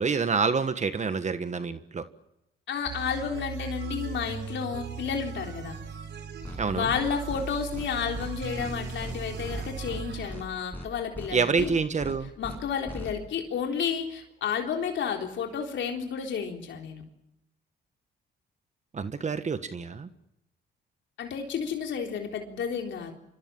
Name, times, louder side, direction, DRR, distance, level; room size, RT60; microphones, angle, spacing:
voice 1, 0.0-2.0 6.6-6.9 11.3-12.3 18.9-20.1, right 5 dB, 35° right, 10 dB, 1.5 m, -27 dB
voice 2, 2.7-5.8 6.7-11.7 12.4-17.0 21.2-23.1, left 7 dB, 70° left, 2 dB, 3.8 m, -31 dB
sound 1, 2.9-10.4, right 6 dB, 65° right, 4.3 m, -38 dB
sound 2, 6.4-6.6 6.9-7.0 7.3-7.4 7.7-7.9 8.1-8.3 8.6-8.7 9.0-9.1 9.4-10.0 10.3-10.4 10.7-10.9 11.1-11.3 11.6-11.7 12.0-12.1 12.4-12.6 12.9-13.1, left 1 dB, 10° left, 7.4 m, -39 dB
25.5 x 25.0 x 7.4 m, 0.86 s
cardioid pair, 90°, 20 cm